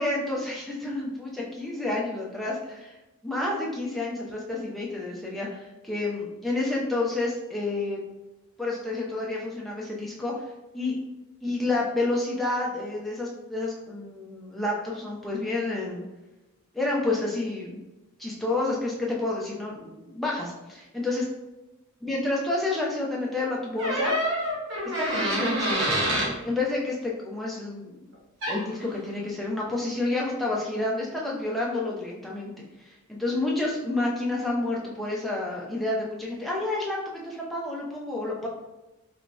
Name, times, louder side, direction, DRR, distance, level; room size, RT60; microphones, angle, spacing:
voice 1, 0.0-3.0 3.2-8.0 8.6-10.3 10.7-11.0 11.4-16.0 16.7-17.8 18.2-21.3 22.0-24.1 25.0-28.0 28.5-32.5 32.8-38.5, left 2 dB, ahead, -4 dB, 0.5 m, -29 dB
sound 1, 23.8-26.3 28.4-28.6, equal, 55° right, 0.9 m, -26 dB
3.0 x 2.8 x 3.4 m, 1.0 s
head